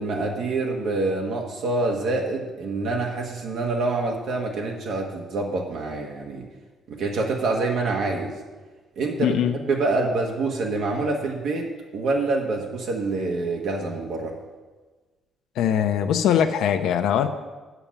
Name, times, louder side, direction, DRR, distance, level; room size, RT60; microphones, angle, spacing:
voice 1, 0.0-6.4 6.9-8.3 9.0-9.4 9.7-11.7 11.9-14.3, right 3 dB, 65° right, 1 dB, 1.3 m, -26 dB
voice 2, 9.2-9.6 15.6-17.3, left 9 dB, 80° left, 6 dB, 0.7 m, -21 dB
8.8 x 7.0 x 7.1 m, 1.3 s
cardioid pair, 130°, 0 cm